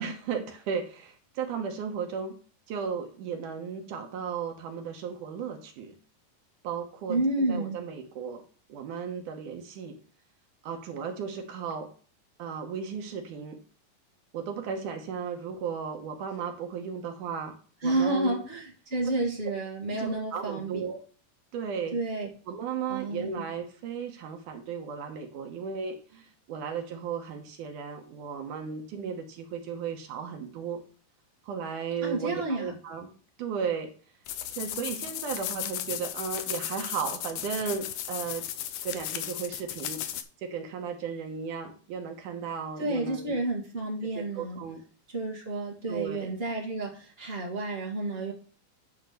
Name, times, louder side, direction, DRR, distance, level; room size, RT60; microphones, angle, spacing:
voice 1, 0.0-2.4 2.7-6.0 6.6-8.4 8.7-10.0 10.6-11.9 12.4-13.6 14.3-18.4 19.9-21.0 21.5-22.0 22.5-30.8 31.4-33.1 33.4-33.9 34.5-38.5 38.8-40.0 40.4-43.4 44.2-44.8 45.9-46.3, right 6 dB, 70° right, 4 dB, 2.5 m, -35 dB
voice 2, 7.1-7.8 17.8-20.7 21.9-22.3 22.9-23.4 32.0-32.7 42.8-44.6 45.1-48.3, right 2 dB, 45° right, -2 dB, 0.7 m, -30 dB
sound 1, 34.3-40.2, left 11 dB, 75° left, 2.1 m, -35 dB
10.5 x 3.6 x 6.6 m, 0.40 s
omnidirectional pair, 4.1 m